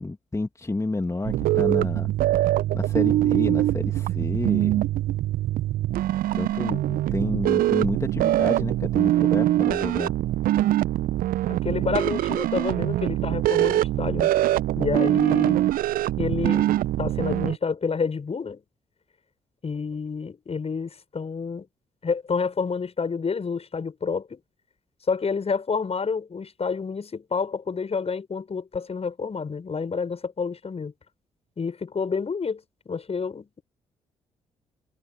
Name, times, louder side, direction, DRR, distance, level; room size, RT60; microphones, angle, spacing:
voice 1, 0.0-2.1 2.7-4.9 6.3-10.1, left 2 dB, 20° left, 2.8 m, -30 dB
sound 1, 1.2-17.6, right 14 dB, 60° right, 1.1 m, -23 dB
voice 2, 11.5-14.3 14.8-15.6 16.2-16.7 17.0-18.6 19.6-21.7 22.0-24.4 25.1-30.9 31.6-33.6, left 5 dB, 40° left, 7.8 m, -29 dB
figure-of-eight pair, 40°, 17 cm